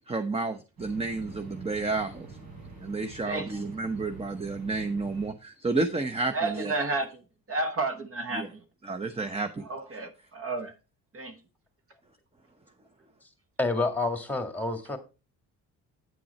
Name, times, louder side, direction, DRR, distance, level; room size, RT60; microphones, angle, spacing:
voice 1, 0.1-2.3 2.8-6.7 8.3-8.5 8.8-9.9, right 3 dB, 15° right, 0.9 m, -31 dB
sound 1, 0.8-5.3, right 3 dB, 80° right, 5.7 m, -46 dB
voice 2, 6.3-7.1 7.5-8.6 9.7-10.7 11.1-11.4, right 3 dB, 40° right, 1.2 m, -31 dB
voice 3, 13.6-15.0, left 3 dB, 5° left, 1.9 m, -28 dB
9.3 x 6.1 x 4.2 m
cardioid pair, 95°, 36 cm